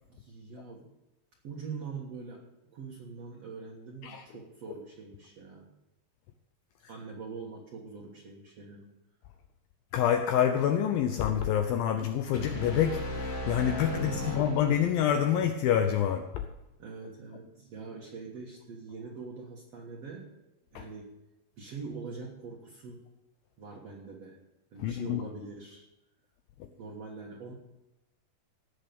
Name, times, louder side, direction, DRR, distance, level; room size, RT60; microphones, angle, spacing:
voice 1, 0.1-0.9 1.4-2.4 2.7-5.7 6.9-8.9 13.9-14.4 16.8-20.3 20.7-21.1 21.6-23.0 23.6-24.4 24.7-25.9 26.8-27.5, right 4 dB, 55° right, -1 dB, 2.0 m, -43 dB
voice 2, 9.9-16.5 20.8-20.9 24.8-25.2, left 9 dB, 80° left, 7 dB, 2.2 m, -27 dB
sound 1, 12.3-15.3, left 1 dB, 50° left, 4.4 m, -36 dB
17.5 x 6.6 x 7.0 m, 0.96 s
omnidirectional pair, 4.8 m